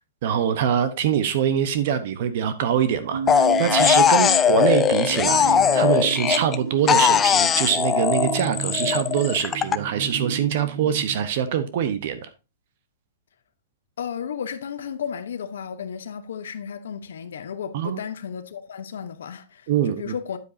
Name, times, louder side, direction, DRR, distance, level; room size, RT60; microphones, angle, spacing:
voice 1, 0.2-12.3 17.7-18.0 19.7-20.1, right 9 dB, 50° right, 0.9 m, -24 dB
sound 1, 3.1-11.3, right 6 dB, 90° right, 1.4 m, -32 dB
sound 2, 3.3-6.6 6.9-9.8, left 8 dB, 15° left, 0.4 m, -19 dB
voice 2, 14.0-20.4, left 7 dB, 85° left, 0.9 m, -33 dB
9.5 x 8.2 x 2.7 m
hypercardioid pair, 165°, 0 cm